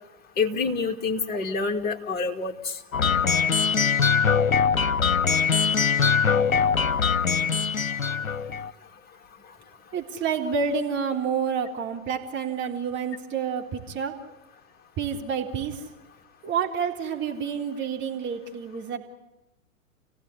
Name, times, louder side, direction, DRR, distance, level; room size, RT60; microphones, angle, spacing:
voice 1, 0.4-2.7, left 4 dB, 25° left, 3 dB, 2.4 m, -27 dB
sound 1, 2.9-8.7, left 6 dB, 85° left, 0.8 m, -22 dB
voice 2, 9.9-14.1 15.0-15.8 16.4-19.0, right 6 dB, 30° right, 2 dB, 3.8 m, -29 dB
29.5 x 16.5 x 10.0 m, 0.97 s
figure-of-eight pair, 105°, 40 cm